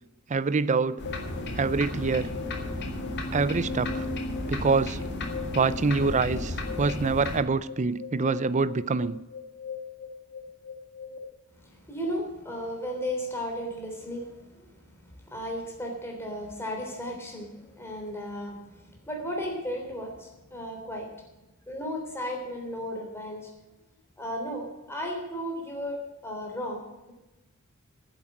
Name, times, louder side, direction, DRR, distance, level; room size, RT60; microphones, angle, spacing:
voice 1, 0.3-1.0 1.6-2.3 3.3-4.1 4.5-5.0 5.5-9.2, right 4 dB, 35° right, 0.5 m, -25 dB
sound 1, 1.0-7.4, left 1 dB, 55° left, 2.1 m, -34 dB
sound 2, 1.1-11.2, left 4 dB, 80° left, 2.1 m, -39 dB
voice 2, 11.6-21.1 21.7-23.5 24.2-27.1, equal, 10° left, 3.4 m, -35 dB
10.5 x 8.1 x 9.0 m
head